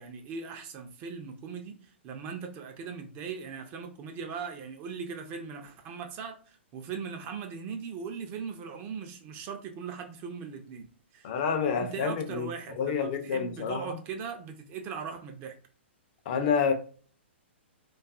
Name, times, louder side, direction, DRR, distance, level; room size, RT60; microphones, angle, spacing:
voice 1, 0.0-10.9 11.1-11.3 11.7-15.6, right 6 dB, 30° right, 0.4 m, -39 dB
voice 2, 11.2-12.5 12.7-14.0 16.3-16.7, left 6 dB, 45° left, 0.5 m, -28 dB
2.5 x 2.3 x 2.4 m
hypercardioid pair, 125°, 7 cm